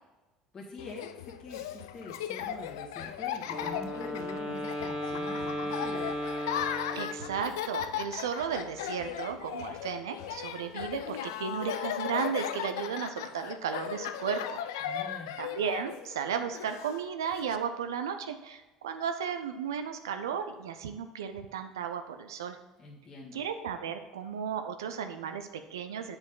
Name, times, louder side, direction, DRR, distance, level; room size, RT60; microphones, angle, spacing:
voice 1, 0.5-6.1 14.8-15.4 22.8-23.4, left 2 dB, 30° left, -5 dB, 1.7 m, -45 dB
Laughter, 0.8-17.6, left 10 dB, 75° left, 0.4 m, -37 dB
Wind instrument woodwind instrument, 3.4-7.6, left 1 dB, 40° right, 1.3 m, -35 dB
voice 2, 6.9-14.6 15.4-22.6 23.3-26.2, right 7 dB, 80° right, 7 dB, 0.5 m, -34 dB
8.2 x 5.2 x 3.8 m, 1.1 s
hypercardioid pair, 65°, 2 cm